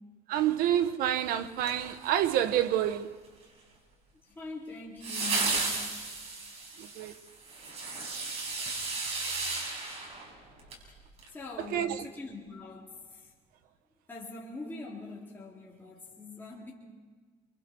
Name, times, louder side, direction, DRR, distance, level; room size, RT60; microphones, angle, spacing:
voice 1, 0.3-3.1 6.8-7.1 11.7-12.0, right 11 dB, 85° right, 1.1 m, -28 dB
sound 1, 1.6-2.5 5.0-10.8 11.2-11.3, right 3 dB, 45° right, 5.8 m, -34 dB
voice 2, 4.3-5.8 11.3-12.9 13.2-13.3 14.1-16.7, left 3 dB, 15° left, 3.6 m, -43 dB
28.5 x 24.5 x 4.6 m
cardioid pair, 135°, 15 cm